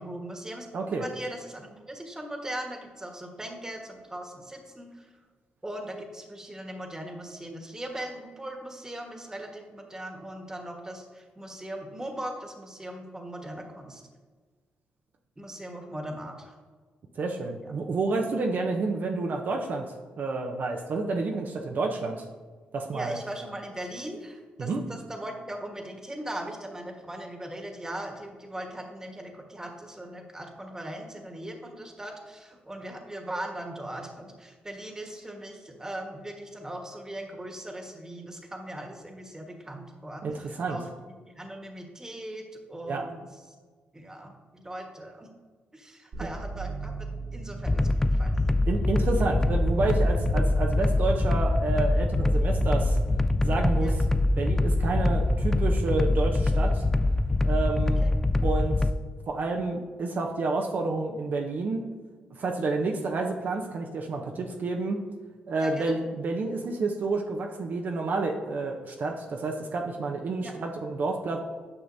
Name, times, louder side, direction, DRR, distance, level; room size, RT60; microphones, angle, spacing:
voice 1, 0.0-0.7 1.0-5.1 5.6-14.0 15.4-16.6 17.6-17.7 22.9-40.8 41.2-43.2 43.9-45.3 45.7-48.4 53.8-53.9 58.0-58.1 65.6-66.0 70.4-70.5, right 1 dB, 15° right, 2 dB, 1.4 m, -39 dB
voice 2, 0.7-1.1 17.2-22.2 22.7-23.2 24.6-24.8 40.2-40.8 42.9-43.0 46.2-46.3 48.7-53.0 53.4-56.8 57.4-58.0 58.4-58.9 59.3-61.9 62.3-65.0 65.5-71.4, right 3 dB, 60° right, 1 dB, 0.7 m, -29 dB
sound 1, 46.1-56.4, right 4 dB, 80° right, 2.0 m, -37 dB
sound 2, 47.7-58.9, left 2 dB, 10° left, 0.3 m, -24 dB
9.6 x 5.7 x 2.7 m, 1.5 s
supercardioid pair, 55°, 3 cm